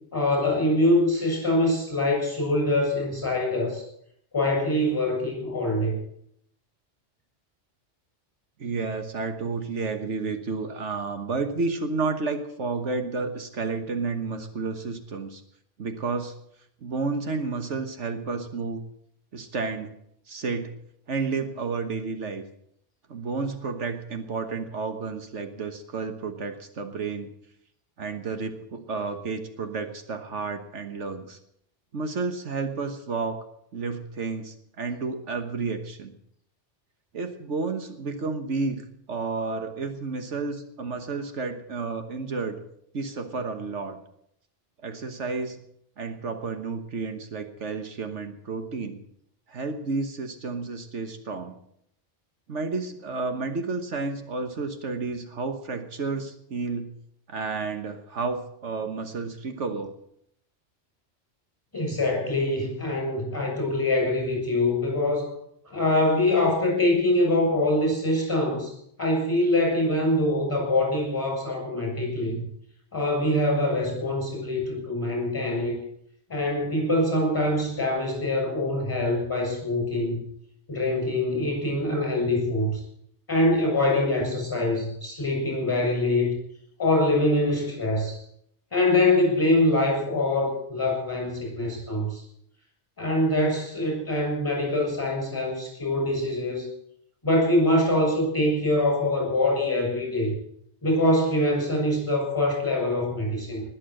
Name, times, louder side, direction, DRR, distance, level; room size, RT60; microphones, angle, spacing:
voice 1, 0.1-3.9 4.3-6.0 61.7-65.3 65.7-68.7 69.0-72.4 72.9-75.8 76.3-80.2 80.7-82.8 83.3-86.4 86.8-88.2 88.7-92.2 93.0-96.7 97.2-100.3 100.8-103.6, left 1 dB, 15° left, -1 dB, 7.2 m, -24 dB
voice 2, 8.6-15.4 15.8-16.3 16.8-18.8 19.3-19.9 20.3-20.7 21.1-22.4 23.1-27.3 28.0-31.4 31.9-33.4 33.7-36.1 37.1-42.6 42.9-44.0 44.8-45.6 46.0-49.0 49.5-51.6 52.5-57.0 57.3-59.9, right 4 dB, 75° right, 7 dB, 1.6 m, -31 dB
20.5 x 7.6 x 7.7 m, 0.72 s
omnidirectional pair, 1.2 m